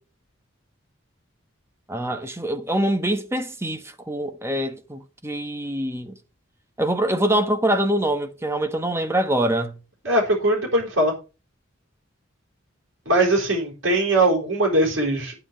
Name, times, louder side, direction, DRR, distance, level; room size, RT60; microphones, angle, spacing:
voice 1, 1.9-6.2 6.8-9.7, right 1 dB, 10° right, 1.1 m, -24 dB
voice 2, 10.0-11.1 13.1-15.3, right 1 dB, 65° right, 4.4 m, -20 dB
9.4 x 5.6 x 7.5 m
head